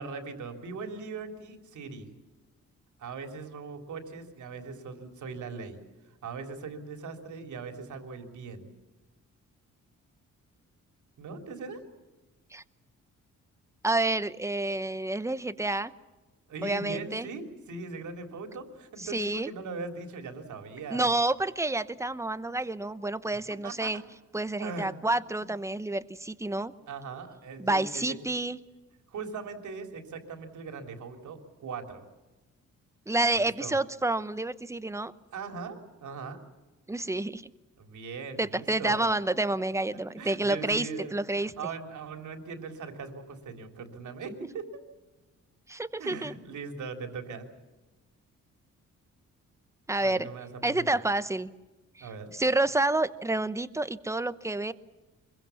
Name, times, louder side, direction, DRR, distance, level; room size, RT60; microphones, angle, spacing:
voice 1, 0.0-2.1 3.0-5.8 6.2-8.7 11.2-11.8 16.5-21.1 23.6-24.0 24.6-24.9 25.2-25.5 26.9-28.0 29.1-32.0 33.3-33.8 35.3-36.4 37.8-39.0 39.9-44.8 46.0-47.5 50.0-51.0 52.0-52.3, right 4 dB, 80° right, 5 dB, 3.5 m, -40 dB
voice 2, 13.8-15.9 16.6-17.3 19.0-19.5 20.9-24.0 24.3-26.7 27.6-28.6 33.1-35.1 36.9-37.4 38.4-41.5 45.7-46.3 49.9-50.3 50.6-51.5 52.0-54.7, right 2 dB, 10° right, 14 dB, 0.8 m, -29 dB
25.0 x 22.0 x 7.2 m, 1.2 s
cardioid pair, 130°, 29 cm